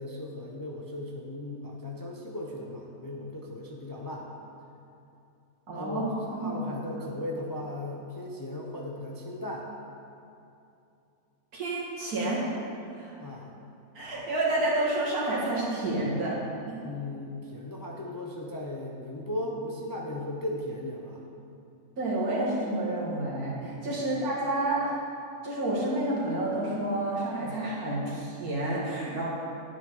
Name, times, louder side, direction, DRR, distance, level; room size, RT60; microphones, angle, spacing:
voice 1, 0.0-4.3 5.7-9.7 13.2-13.5 16.8-21.2 23.9-24.0, left 1 dB, 25° left, -1 dB, 0.5 m, -37 dB
voice 2, 5.7-6.7 11.5-12.4 12.9-13.1 13.9-16.4 22.0-24.9 25.4-29.2, right 1 dB, 80° right, -6 dB, 2.5 m, -29 dB
9.7 x 9.1 x 3.8 m, 2.7 s
omnidirectional pair, 1.6 m